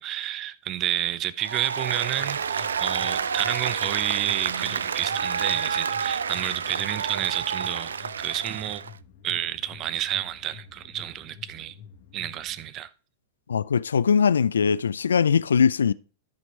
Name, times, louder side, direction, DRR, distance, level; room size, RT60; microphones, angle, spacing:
voice 1, 0.0-8.8 9.2-11.7 12.1-12.9, right 12 dB, 35° right, 0.7 m, -30 dB
Applause, 1.4-8.9, right 6 dB, 80° right, 0.3 m, -29 dB
sound 1, 2.2-12.6, left 7 dB, 55° left, 1.1 m, -48 dB
voice 2, 13.5-15.9, left 6 dB, 80° left, 0.3 m, -21 dB
13.0 x 5.2 x 3.1 m
hypercardioid pair, 100°, 0 cm